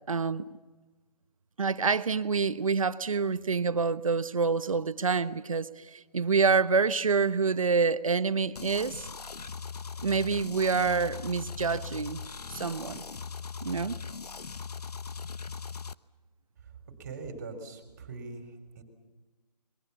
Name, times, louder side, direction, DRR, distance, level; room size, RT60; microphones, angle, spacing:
voice 1, 0.1-0.4 1.6-9.1 10.0-12.2 12.5-13.0 13.6-14.0, right 5 dB, 55° right, 1.1 m, -27 dB
sound 1, 8.5-15.9, left 5 dB, 70° left, 1.0 m, -40 dB
voice 2, 17.0-18.5 18.8-18.9, right 4 dB, 25° right, 3.8 m, -41 dB
27.0 x 23.0 x 7.0 m
hypercardioid pair, 175°, 21 cm